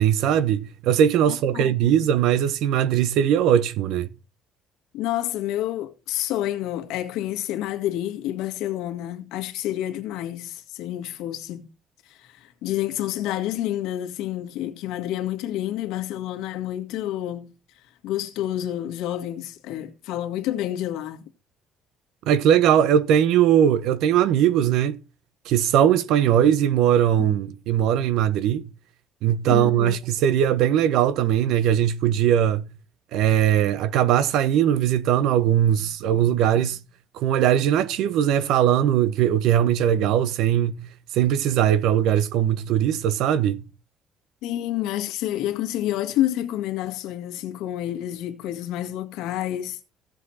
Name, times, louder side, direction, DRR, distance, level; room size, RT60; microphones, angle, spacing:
voice 1, 0.0-4.1 22.2-25.0 25.4-28.6 29.2-32.7 33.1-36.8 37.1-40.9 41.1-43.6, right 10 dB, 70° right, 1.1 m, -20 dB
voice 2, 1.3-2.0 4.9-11.7 12.1-17.5 18.0-21.3 27.2-27.3 29.5-30.0 44.4-49.8, left 13 dB, 90° left, 1.8 m, -29 dB
16.0 x 7.2 x 4.2 m
cardioid pair, 170°, 0 cm